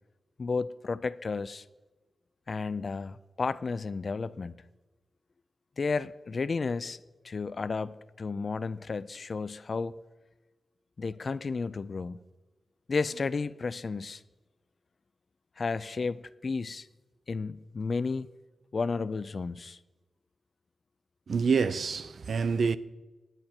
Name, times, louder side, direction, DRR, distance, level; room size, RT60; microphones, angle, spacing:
voice 1, 0.4-1.6 2.5-4.6 5.8-7.0 7.2-9.9 11.0-12.2 12.9-14.2 15.6-16.9 17.3-18.3 18.7-19.8, left 4 dB, 40° left, 0.3 m, -32 dB
voice 2, 21.3-22.8, right 5 dB, 55° right, 0.4 m, -27 dB
10.5 x 9.2 x 4.3 m
wide cardioid pair, 160°, 0 cm